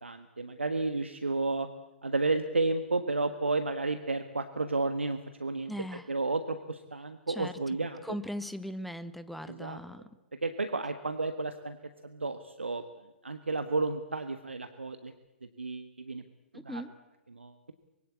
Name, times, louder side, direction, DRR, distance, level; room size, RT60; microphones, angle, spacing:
voice 1, 0.0-1.7 2.0-5.7 6.1-8.0 9.5-9.8 10.4-11.8 12.0-12.8 13.2-15.1 15.6-16.2 16.6-16.8 17.3-17.7, right 3 dB, 80° right, 9 dB, 1.5 m, -32 dB
voice 2, 5.7-6.1 7.3-7.5 8.0-10.1 16.5-16.9, equal, ahead, 14 dB, 1.1 m, -39 dB
24.5 x 22.0 x 8.5 m, 0.98 s
figure-of-eight pair, 115°, 6 cm